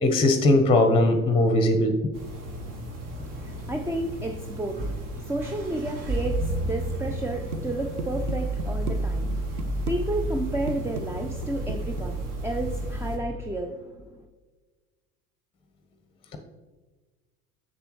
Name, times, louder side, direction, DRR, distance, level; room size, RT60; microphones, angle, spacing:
voice 1, 0.0-2.0, left 2 dB, 10° left, 5 dB, 0.9 m, -20 dB
sound 1, 2.1-13.2, right 1 dB, 45° right, 1.8 m, -32 dB
voice 2, 3.1-14.2, right 2 dB, 5° right, 3 dB, 0.4 m, -32 dB
sound 2, 7.1-7.3 7.5-9.0 9.3-10.0 10.2-10.4 10.7-12.0, right 4 dB, 85° right, 0.7 m, -34 dB
7.8 x 6.7 x 3.1 m, 1.3 s
hypercardioid pair, 70°, 44 cm